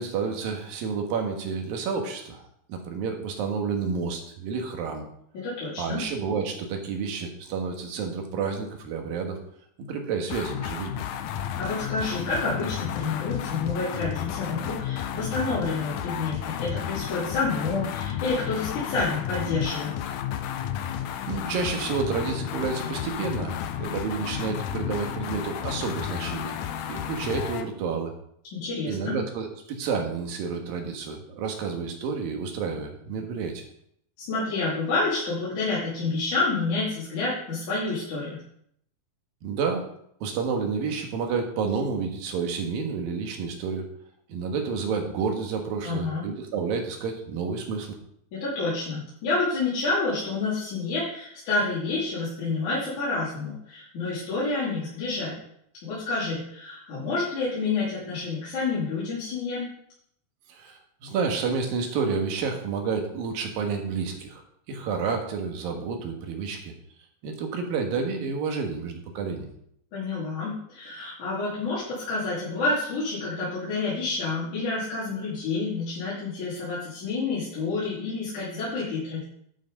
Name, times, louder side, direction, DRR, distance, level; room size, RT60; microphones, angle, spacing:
voice 1, 0.0-5.1 5.8-9.4 9.8-11.0 21.3-26.5 26.9-28.1 28.9-33.6 39.4-39.9 40.2-43.8 44.3-47.9 60.5-66.7 67.2-69.5, right 5 dB, 85° right, 3 dB, 3.2 m, -30 dB
voice 2, 5.3-6.0 11.6-19.9 28.5-29.2 34.3-38.4 45.8-46.2 48.3-55.4 55.8-59.7 69.9-79.2, left 3 dB, 60° left, -9 dB, 4.3 m, -29 dB
sound 1, 10.3-27.7, left 10 dB, 75° left, 2.0 m, -32 dB
11.5 x 6.0 x 5.3 m, 0.70 s
omnidirectional pair, 3.9 m